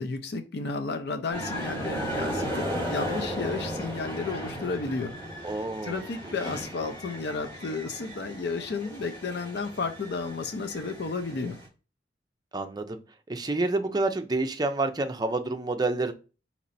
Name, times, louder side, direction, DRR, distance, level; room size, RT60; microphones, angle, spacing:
voice 1, 0.0-5.1 5.4-11.6, left 4 dB, 65° left, 0.5 m, -33 dB
sound 1, 1.3-11.7, equal, 15° left, 2.6 m, -35 dB
voice 2, 5.4-6.0 12.5-13.0 13.3-16.1, right 2 dB, 25° right, 0.5 m, -28 dB
4.2 x 3.0 x 4.0 m
head